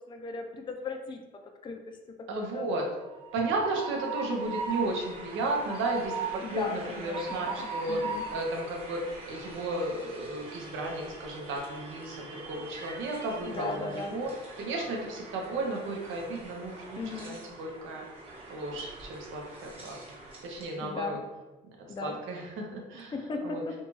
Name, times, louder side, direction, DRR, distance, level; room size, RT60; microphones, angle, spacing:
voice 1, 0.1-1.2 1.6-1.8 2.4-2.7 6.4-8.3 13.5-14.2 17.0-17.3 20.8-21.2 21.9-22.2 23.1-23.7, left 3 dB, 25° left, 4 dB, 0.3 m, -36 dB
voice 2, 2.3-2.9 3.3-8.0 8.3-18.0 18.5-20.0 20.4-21.2 22.0-23.1 23.4-23.6, right 2 dB, 80° right, 1 dB, 0.6 m, -34 dB
Train, 3.0-20.8, right 4 dB, 30° right, 1.0 m, -41 dB
2.6 x 2.2 x 3.0 m, 1.1 s
cardioid pair, 90°, 20 cm